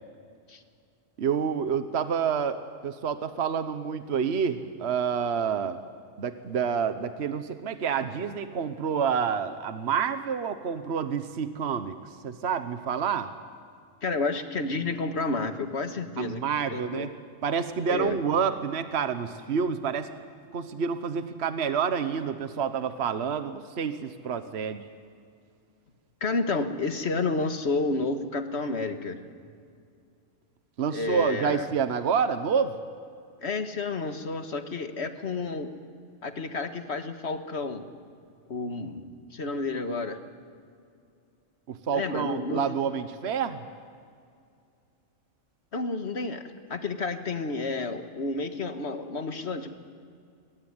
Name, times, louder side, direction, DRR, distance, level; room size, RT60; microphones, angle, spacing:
voice 1, 1.2-5.8 6.2-12.0 12.2-13.3 16.2-17.1 17.4-20.1 20.5-24.8 30.8-32.8 41.7-43.6, right 7 dB, 55° right, 10 dB, 1.3 m, -28 dB
voice 2, 14.0-16.4 16.7-17.1 17.9-18.2 26.2-29.2 30.9-31.7 33.4-35.7 36.2-37.8 38.5-40.2 41.9-42.7 45.7-49.7, left 3 dB, 55° left, 7 dB, 1.8 m, -30 dB
23.5 x 21.0 x 9.7 m, 2.3 s
omnidirectional pair, 1.3 m